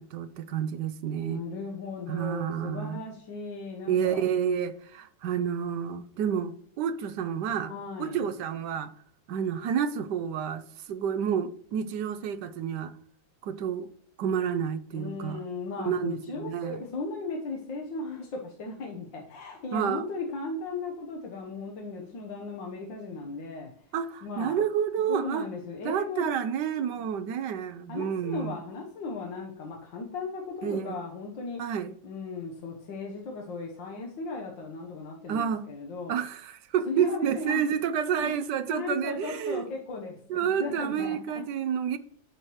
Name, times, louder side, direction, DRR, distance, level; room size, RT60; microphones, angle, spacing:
voice 1, 0.0-1.4 2.1-3.0 3.9-7.7 8.0-8.9 9.3-12.9 13.4-13.9 14.2-15.4 15.9-16.8 19.7-20.0 23.9-25.5 25.8-28.6 30.6-31.0 31.6-31.9 35.3-35.6 36.1-39.7 40.3-42.0, right 8 dB, 70° right, 1.2 m, -29 dB
voice 2, 1.2-4.2 7.7-8.3 14.9-23.7 24.2-24.6 25.1-26.2 27.9-31.6 32.0-36.1 36.9-37.6 38.2-38.3 38.7-40.2 40.6-41.2, left 3 dB, 75° left, 1.8 m, -36 dB
9.7 x 6.4 x 3.0 m
omnidirectional pair, 2.0 m